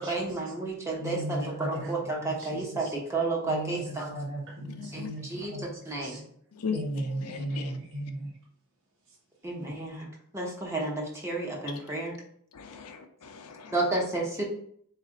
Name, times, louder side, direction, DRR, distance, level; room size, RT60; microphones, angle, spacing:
voice 1, 0.0-4.1 4.9-6.2 9.4-12.1 13.7-14.4, right 2 dB, 15° right, 1.0 m, -31 dB
voice 2, 1.0-2.9 3.4-6.2 6.7-8.3, right 1 dB, 60° right, 1.0 m, -37 dB
voice 3, 4.8-5.1 6.5-6.8 7.2-7.8 12.5-13.8, left 6 dB, 90° left, 0.6 m, -37 dB
4.1 x 2.5 x 3.7 m
head